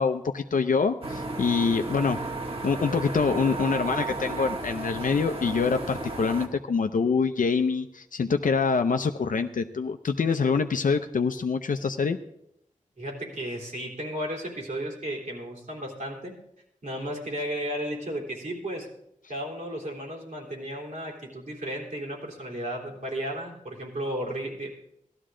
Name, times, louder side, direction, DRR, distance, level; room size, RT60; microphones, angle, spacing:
voice 1, 0.0-2.2 2.6-12.2, left 5 dB, 85° left, 6 dB, 0.6 m, -25 dB
sound 1, 1.0-6.5, right 3 dB, 45° right, 1.6 m, -33 dB
voice 2, 13.0-16.4 16.8-18.9 19.3-24.7, equal, 70° right, -2 dB, 3.6 m, -34 dB
16.5 x 12.5 x 3.8 m, 0.77 s
wide cardioid pair, 90°, 13 cm